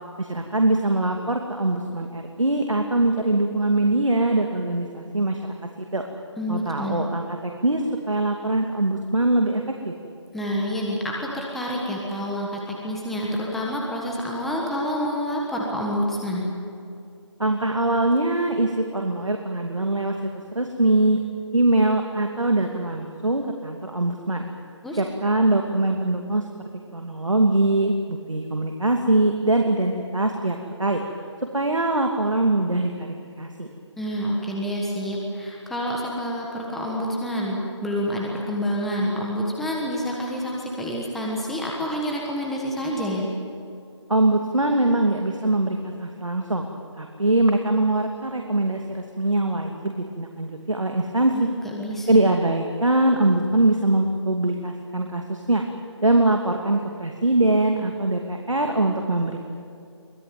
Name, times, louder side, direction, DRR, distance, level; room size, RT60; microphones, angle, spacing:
voice 1, 0.2-6.0 6.5-9.9 17.4-20.1 20.5-21.2 21.5-24.4 25.0-26.4 26.9-31.0 31.5-32.9 33.4-33.7 44.1-46.7 47.0-51.5 52.1-55.6 56.0-59.4, right 2 dB, 90° right, 3 dB, 2.6 m, -22 dB
voice 2, 6.4-7.0 10.3-16.5 24.8-25.0 34.0-43.3 51.3-52.2, equal, ahead, -2 dB, 1.4 m, -28 dB
24.0 x 18.5 x 9.4 m, 2.5 s
figure-of-eight pair, 165°, 16 cm